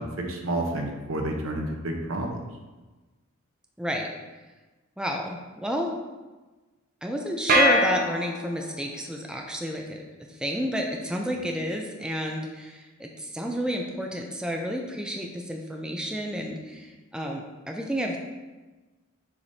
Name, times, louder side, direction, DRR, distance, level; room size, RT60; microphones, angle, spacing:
voice 1, 0.0-2.4, right 1 dB, 65° right, 2 dB, 0.9 m, -30 dB
voice 2, 3.8-4.1 5.0-5.9 7.0-10.0 10.3-18.2, equal, 5° right, 1 dB, 0.4 m, -31 dB
sound 1, 7.5-8.9, equal, 40° right, 0.7 m, -23 dB
7.0 x 5.0 x 2.7 m, 1.2 s
head